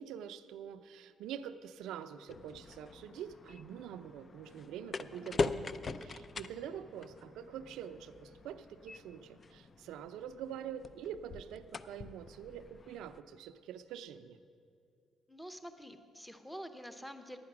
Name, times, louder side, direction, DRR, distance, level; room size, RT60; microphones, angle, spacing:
voice 1, 0.0-5.7 6.0-14.4, right 9 dB, 90° right, 11 dB, 0.4 m, -45 dB
sound 1, 2.3-13.2, left 3 dB, 40° left, 0.4 m, -43 dB
voice 2, 15.3-17.4, equal, 5° left, 8 dB, 0.7 m, -47 dB
11.0 x 9.5 x 5.9 m, 2.4 s
cardioid pair, 90°, 0 cm